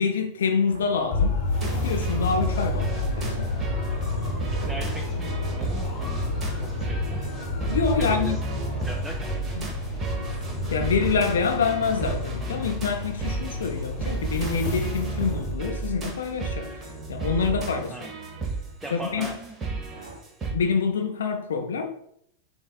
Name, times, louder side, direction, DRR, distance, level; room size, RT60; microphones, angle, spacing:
voice 1, 0.0-3.5 7.7-8.4 9.6-9.7 10.1-10.3 10.5-16.7 17.1-18.0 18.9-19.3 20.5-21.9, left 5 dB, 65° left, 0.4 m, -26 dB
sound 1, 0.7-20.2, right 1 dB, 65° right, 0.7 m, -46 dB
sound 2, 1.1-15.5, left 2 dB, 40° left, 0.9 m, -30 dB
sound 3, 1.5-20.5, right 4 dB, 20° right, 1.0 m, -33 dB
voice 2, 4.5-6.0 6.6-7.3 8.0-9.3 17.9-18.2 18.8-19.8, right 1 dB, 5° right, 0.4 m, -39 dB
7.0 x 2.6 x 2.3 m
figure-of-eight pair, 90°, 0 cm